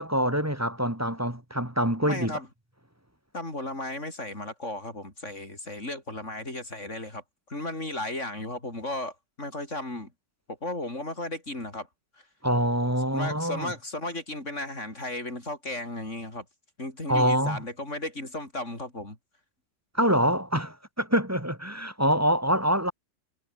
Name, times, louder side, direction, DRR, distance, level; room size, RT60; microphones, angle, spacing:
voice 1, 0.0-2.4 12.4-13.7 17.1-17.6 19.9-22.9, equal, 10° right, 2.3 m, -25 dB
voice 2, 2.1-2.5 3.3-7.2 7.5-10.1 10.5-11.9 13.1-16.5 16.8-19.2, left 2 dB, 40° left, 6.9 m, -35 dB
omnidirectional pair, 2.0 m